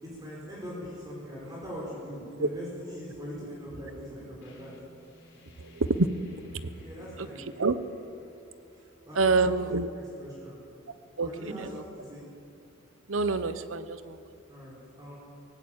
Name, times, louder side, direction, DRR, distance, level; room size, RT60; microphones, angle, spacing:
voice 1, 0.0-4.7 6.8-7.5 9.1-10.6 11.2-12.3 14.5-15.2, equal, 20° right, -6 dB, 4.8 m, -41 dB
sound 1, 4.4-9.9, equal, 60° left, 4.7 m, -56 dB
voice 2, 5.6-6.1 7.2-7.3 7.6-7.8 9.2-9.9 11.2-11.3 13.1-14.2, right 3 dB, 90° right, 13 dB, 1.0 m, -26 dB
18.5 x 16.0 x 8.8 m, 2.5 s
head